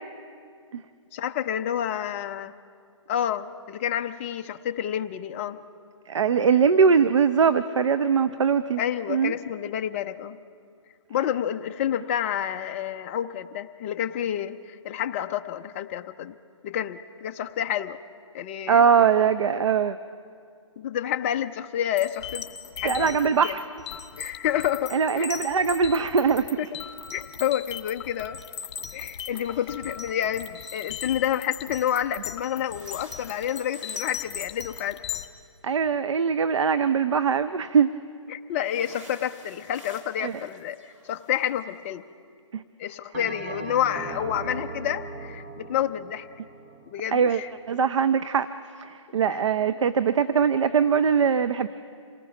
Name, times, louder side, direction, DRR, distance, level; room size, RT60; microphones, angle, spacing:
voice 1, 1.1-2.5 3.1-5.6 8.8-10.4 11.1-16.3 16.6-18.0 18.3-18.8 20.8-22.4 22.8-23.6 24.2-25.3 26.6-26.8 27.1-28.4 28.9-35.0 38.3-40.8 41.1-42.0 42.8-46.3 46.9-47.5 49.3-49.4, left 10 dB, 25° left, 8 dB, 0.5 m, -29 dB
voice 2, 6.1-8.8 9.1-9.3 18.7-20.0 22.8-23.6 24.9-26.6 35.6-37.9 40.2-40.4 42.5-42.6 47.1-47.4 47.7-48.5 48.8-51.7, right 6 dB, 70° right, 12 dB, 0.7 m, -21 dB
sound 1, 22.0-35.3, left 8 dB, 50° left, 1.9 m, -38 dB
sound 2, 32.6-35.7 38.6-41.7, right 2 dB, 90° right, 4.0 m, -52 dB
Bell, 43.1-47.7, right 3 dB, 30° right, 1.2 m, -39 dB
27.5 x 19.0 x 5.9 m, 2.3 s
hypercardioid pair, 155°, 16 cm